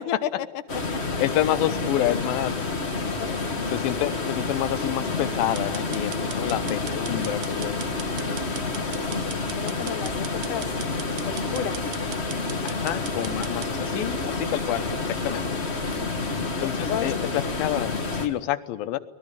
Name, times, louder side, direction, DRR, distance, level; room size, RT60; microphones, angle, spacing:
sound 1, 0.7-18.3, left 3 dB, 25° left, 1.9 m, -29 dB
voice 1, 1.2-2.5 3.7-7.8 12.6-15.5 16.6-19.0, left 13 dB, 90° left, 12 dB, 2.8 m, -28 dB
voice 2, 2.4-2.8 3.2-3.7 8.5-9.3 9.6-10.1 10.5-10.7 11.2-11.9 15.9-17.1, left 11 dB, 70° left, 9 dB, 2.5 m, -34 dB
sound 2, 5.6-13.7, right 12 dB, 70° right, 2.5 m, -40 dB
24.0 x 20.5 x 8.8 m, 1.1 s
omnidirectional pair, 4.0 m